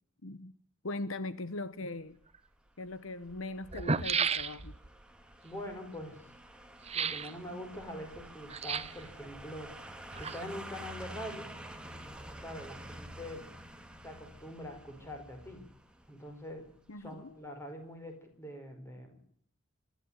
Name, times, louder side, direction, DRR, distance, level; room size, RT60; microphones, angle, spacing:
voice 1, 0.2-0.6 0.8-2.2 2.8-4.8 16.9-17.3, left 2 dB, 70° left, 1.1 m, -40 dB
sound 1, 2.2-17.1 17.4-17.5, right 1 dB, 5° right, 2.1 m, -49 dB
sound 2, 2.3-2.4 3.3-3.4 3.6-4.9 6.8-7.3 8.5-9.1 9.9-10.7 11.0-11.1, right 5 dB, 30° right, 0.9 m, -33 dB
voice 2, 5.4-6.2 6.9-9.7 10.2-11.5 12.4-13.5 14.0-15.6 16.1-16.7 17.0-19.2, left 1 dB, 10° left, 4.9 m, -44 dB
26.5 x 13.0 x 10.0 m
head